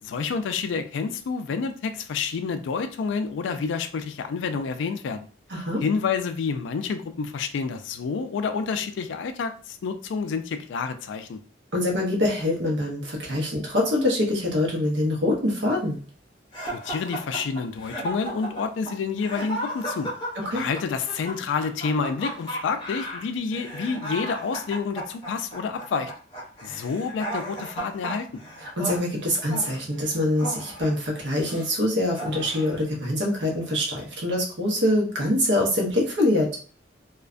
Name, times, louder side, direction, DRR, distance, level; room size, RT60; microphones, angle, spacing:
voice 1, 0.0-5.3 5.8-11.4 16.7-20.1 20.5-26.1 26.6-28.3, left 5 dB, 80° left, 8 dB, 0.3 m, -29 dB
voice 2, 5.5-5.8 11.7-16.0 20.3-20.6 28.8-36.5, left 1 dB, 70° right, -2 dB, 0.8 m, -24 dB
sound 1, 16.5-31.7 32.1-32.8, right 1 dB, 25° left, 0.7 m, -35 dB
2.4 x 2.2 x 2.4 m, 0.40 s
head